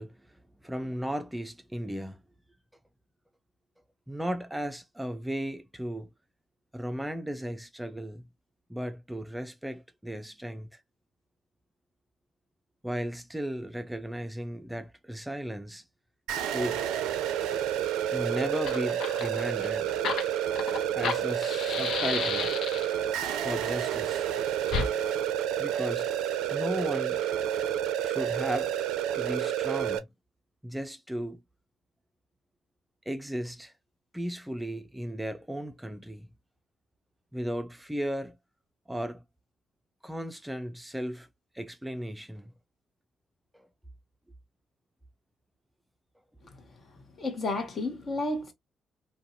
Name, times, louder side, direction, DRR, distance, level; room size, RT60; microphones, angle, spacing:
voice 1, 0.0-2.2 4.1-6.1 6.7-8.3 8.7-10.8 12.8-15.8 16.5-16.8 18.1-20.0 20.9-22.5 23.4-24.3 25.6-26.1 26.5-27.2 28.0-28.7 29.1-30.1 30.6-31.4 33.1-33.7 34.1-36.3 37.3-38.4 38.9-39.2 40.0-41.3 41.5-42.5 43.5-43.7, equal, 10° right, 0.4 m, -35 dB
sound 1, 16.3-30.0, right 10 dB, 75° right, 0.4 m, -30 dB
Fire, 18.2-18.3 18.5-23.1 24.7-24.9, left 5 dB, 65° left, 0.5 m, -32 dB
voice 2, 47.2-48.5, left 2 dB, 50° left, 1.0 m, -31 dB
2.6 x 2.2 x 2.6 m
hypercardioid pair, 45°, 0 cm